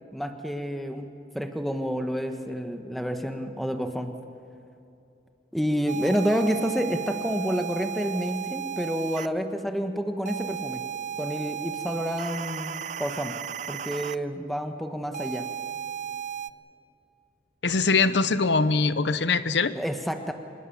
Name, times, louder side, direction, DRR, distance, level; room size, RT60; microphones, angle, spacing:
voice 1, 0.1-4.1 5.5-10.8 11.2-13.4 13.7-15.5 19.7-20.3, equal, ahead, 5 dB, 1.3 m, -29 dB
sound 1, 5.9-9.3 10.2-14.2 15.1-16.5, right 8 dB, 40° right, 0.5 m, -34 dB
voice 2, 17.6-19.7, left 4 dB, 80° left, 13 dB, 0.8 m, -22 dB
25.0 x 20.5 x 7.2 m, 2.7 s
head